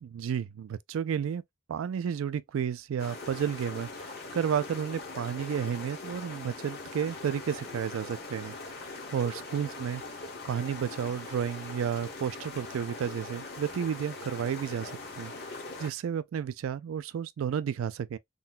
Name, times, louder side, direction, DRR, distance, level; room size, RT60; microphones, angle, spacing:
voice 1, 0.0-1.4 1.7-8.5 9.1-10.0 10.5-15.3 15.8-18.2, right 8 dB, 80° right, 0.3 m, -32 dB
sound 1, 3.0-15.9, left 3 dB, 50° left, 1.1 m, -42 dB
3.8 x 2.2 x 2.4 m
head